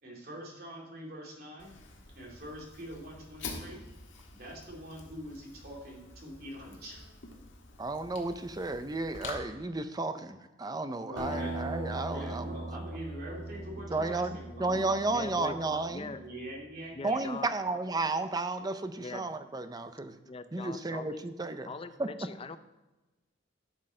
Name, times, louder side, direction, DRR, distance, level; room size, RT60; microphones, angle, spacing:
voice 1, 0.0-1.8 2.1-3.8 4.3-7.0 11.1-11.6 12.1-14.7 15.4-15.6 16.2-17.2, equal, 55° right, -2 dB, 2.6 m, -44 dB
Fire, 1.6-9.3, left 3 dB, 80° left, 1.5 m, -47 dB
voice 2, 7.8-12.5 13.9-16.1 17.0-20.2 20.5-21.7 22.0-22.1, right 2 dB, 20° right, 10 dB, 0.5 m, -33 dB
Acoustic guitar, 11.2-16.0, right 2 dB, 80° right, 2.5 m, -40 dB
voice 3, 14.4-14.8 15.1-15.6 15.9-16.2 16.9-17.5 19.0-19.3 20.2-21.3 21.7-22.6, left 3 dB, 30° left, 11 dB, 0.5 m, -42 dB
11.5 x 6.3 x 3.8 m, 1.1 s
head